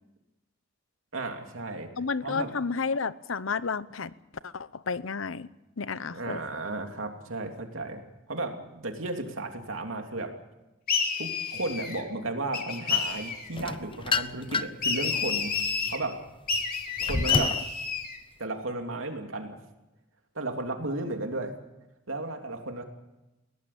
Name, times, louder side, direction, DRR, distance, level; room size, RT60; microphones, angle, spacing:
voice 1, 1.1-1.9 2.2-2.5 6.1-8.0 8.3-10.3 11.2-15.5 15.9-16.2 17.0-17.5 18.4-19.6 20.3-21.6 22.1-22.8, right 2 dB, 85° right, 4 dB, 3.0 m, -34 dB
voice 2, 2.0-4.1 4.4-5.5 5.8-6.4, left 5 dB, 85° left, 16 dB, 0.8 m, -31 dB
sound 1, 10.9-12.0 12.5-13.5 14.8-16.0 16.5-18.2, left 5 dB, 50° left, 2.9 m, -29 dB
sound 2, 13.5-14.9 15.4-17.7, left 3 dB, 25° left, 0.7 m, -30 dB
21.5 x 18.0 x 8.6 m, 0.97 s
head